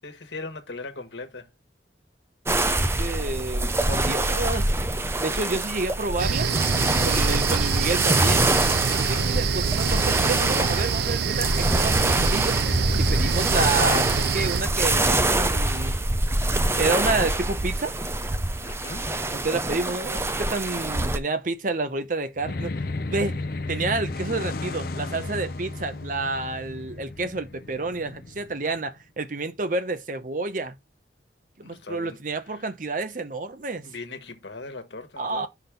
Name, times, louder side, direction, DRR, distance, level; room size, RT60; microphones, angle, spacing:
voice 1, 0.0-1.5 8.9-9.3 18.6-19.2 31.6-32.7 33.8-35.5, left 3 dB, 80° left, 1.4 m, -40 dB
sound 1, 2.5-21.2, right 2 dB, 15° right, 0.6 m, -25 dB
voice 2, 3.0-4.7 5.2-6.5 7.0-8.5 8.9-12.6 12.9-16.0 16.8-17.9 19.3-23.4 23.7-30.8 31.6-33.9 35.2-35.5, right 3 dB, 45° right, 0.9 m, -29 dB
sound 2, 6.2-14.6, right 6 dB, 65° right, 0.5 m, -26 dB
sound 3, 22.4-29.0, left 2 dB, 55° left, 0.6 m, -34 dB
5.9 x 3.6 x 5.7 m
head